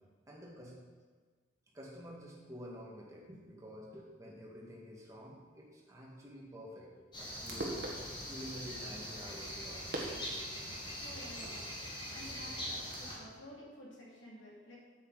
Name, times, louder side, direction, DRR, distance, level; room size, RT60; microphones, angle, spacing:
voice 1, 0.3-0.7 1.7-8.0 8.2-10.8, equal, 15° right, -4 dB, 1.8 m, -50 dB
sound 1, 7.1-13.1, left 1 dB, 25° left, 1.9 m, -42 dB
sound 2, 7.2-13.2, right 1 dB, 55° right, 1.5 m, -46 dB
voice 2, 11.0-11.8 12.1-14.8, equal, 80° left, -4 dB, 2.8 m, -52 dB
8.2 x 8.1 x 4.9 m, 1.5 s
head